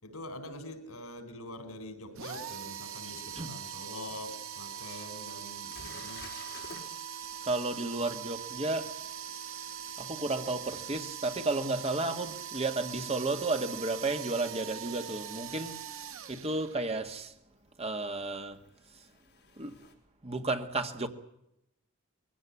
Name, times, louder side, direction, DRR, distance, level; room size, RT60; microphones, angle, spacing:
voice 1, 0.0-6.3, left 1 dB, 80° left, 4.4 m, -44 dB
sound 1, 2.2-17.0, right 9 dB, 65° right, 1.3 m, -42 dB
voice 2, 3.0-3.5 4.9-5.0 7.4-8.9 10.0-15.8 16.3-17.3 17.8-18.6 19.6-19.8 20.2-21.1, right 2 dB, 30° right, 1.7 m, -33 dB
sound 2, 4.5-4.6 5.2-5.3 5.7-6.9 12.0-12.1 14.8-14.9 16.6-16.7 18.1-19.9, left 4 dB, 50° left, 5.0 m, -50 dB
22.0 x 16.5 x 9.9 m
head